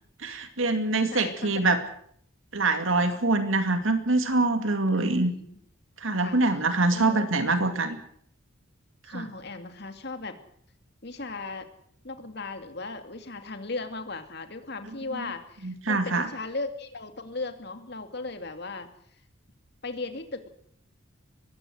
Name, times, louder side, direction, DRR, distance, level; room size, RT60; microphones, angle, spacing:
voice 1, 0.2-1.8 2.5-5.3 6.0-8.0 9.1-9.2 15.6-16.3, right 2 dB, 70° right, 9 dB, 2.3 m, -24 dB
voice 2, 1.1-1.8 4.9-5.6 6.2-6.4 6.9-7.2 9.0-10.4 11.0-11.7 12.0-18.9 19.8-20.5, left 3 dB, 50° left, 8 dB, 2.5 m, -37 dB
21.0 x 16.0 x 7.8 m, 0.65 s
head